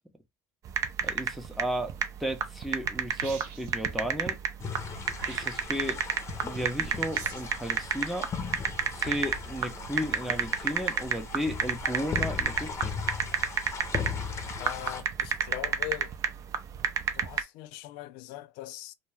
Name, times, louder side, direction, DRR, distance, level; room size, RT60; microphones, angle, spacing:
sound 1, 0.6-17.4, right 8 dB, 40° right, 0.5 m, -30 dB
voice 1, 1.0-4.4 5.3-6.0 6.4-8.3 8.9-12.9, equal, ahead, 0.6 m, -34 dB
sound 2, 3.2-3.8 5.1-5.8 7.1-7.6, right 5 dB, 75° right, 1.0 m, -44 dB
sound 3, 4.6-15.0, left 6 dB, 35° left, 0.7 m, -38 dB
voice 2, 14.6-16.1 17.1-18.9, left 15 dB, 65° left, 0.3 m, -41 dB
2.3 x 2.2 x 3.2 m
hypercardioid pair, 90°, 8 cm